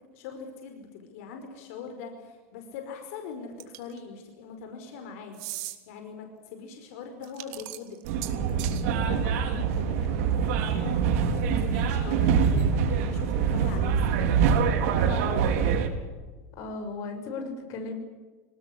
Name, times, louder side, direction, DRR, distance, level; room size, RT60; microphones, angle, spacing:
voice 1, 0.1-5.4 5.8-8.0 8.3-14.0 14.9-15.7, left 5 dB, 70° left, 4 dB, 5.1 m, -41 dB
sound 1, 3.6-4.0 5.3-5.8 7.2-8.8, right 17 dB, 55° right, 2.7 m, -38 dB
sound 2, 8.0-15.9, right 6 dB, 70° right, 4.5 m, -24 dB
voice 2, 16.6-17.9, left 3 dB, 45° left, 5 dB, 6.6 m, -35 dB
26.0 x 19.0 x 10.0 m, 1.3 s
supercardioid pair, 150°, 8 cm